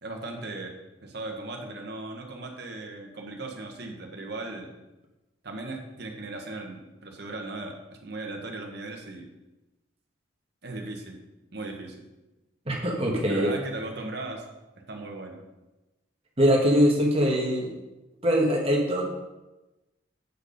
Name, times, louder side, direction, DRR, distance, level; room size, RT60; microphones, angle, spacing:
voice 1, 0.0-4.7 5.4-9.3 10.6-11.2 11.5-12.0 13.3-14.4 14.8-15.4, right 2 dB, 55° right, 2 dB, 1.2 m, -37 dB
voice 2, 12.7-13.5 16.4-17.7 18.2-19.1, equal, 30° right, 0 dB, 1.3 m, -22 dB
8.1 x 4.6 x 5.1 m, 1.0 s
head